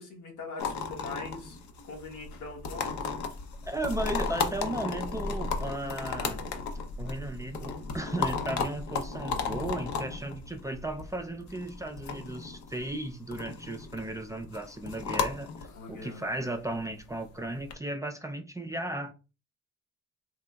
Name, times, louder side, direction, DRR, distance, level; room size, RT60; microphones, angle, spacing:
voice 1, 0.0-1.6 1.8-3.0 15.7-16.2, left 3 dB, 85° left, 1.2 m, -42 dB
sound 1, 0.6-17.7, left 5 dB, 70° left, 0.6 m, -35 dB
voice 2, 3.6-6.4 7.0-19.1, right 1 dB, 10° right, 0.3 m, -35 dB
3.5 x 2.8 x 2.2 m
cardioid pair, 90°, 30 cm